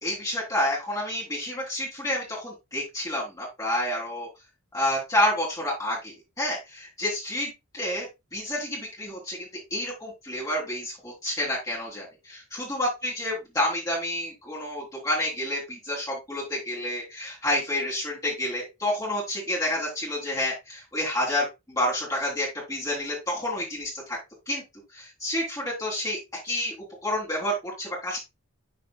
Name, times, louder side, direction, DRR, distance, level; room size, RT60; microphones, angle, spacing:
voice 1, 0.0-4.3 4.7-8.1 8.3-24.2 24.5-24.6 24.9-26.2 26.4-26.7 27.0-28.2, left 1 dB, 15° left, -5 dB, 2.7 m, -29 dB
11.0 x 4.2 x 2.3 m, 0.22 s
head